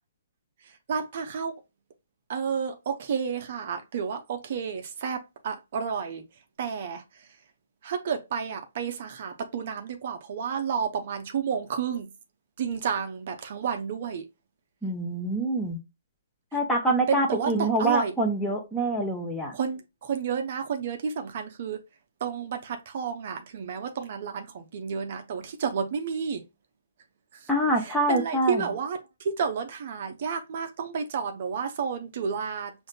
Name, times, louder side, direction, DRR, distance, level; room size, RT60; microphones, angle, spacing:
voice 1, 0.6-1.6 2.3-6.2 6.6-7.3 7.8-12.1 12.6-14.2 17.1-18.1 19.5-21.8 22.2-26.4 27.3-27.5 27.8-32.7, right 6 dB, 45° right, 0.6 m, -31 dB
voice 2, 14.8-15.8 16.5-19.5 27.5-28.7, right 1 dB, 5° left, 0.9 m, -25 dB
6.2 x 2.6 x 2.2 m
figure-of-eight pair, 130°, 0 cm